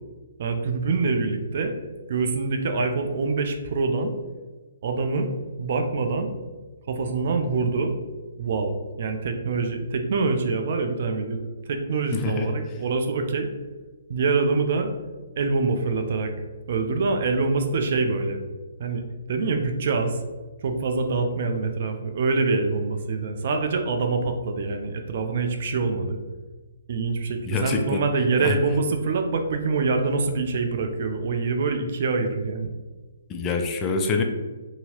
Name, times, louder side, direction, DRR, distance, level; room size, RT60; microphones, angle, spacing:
voice 1, 0.4-1.7 2.1-4.1 4.8-5.3 5.6-6.3 6.9-7.9 8.4-11.4 11.7-13.5 14.1-14.9 15.4-16.3 16.7-18.4 18.8-19.0 19.3-20.2 20.6-26.2 26.9-32.7, right 4 dB, 55° right, 6 dB, 0.4 m, -25 dB
voice 2, 12.1-12.5 27.5-28.0 28.4-28.6 33.3-34.2, left 4 dB, 20° left, 4 dB, 0.3 m, -26 dB
2.8 x 2.7 x 2.9 m, 1.3 s
hypercardioid pair, 145°, 0 cm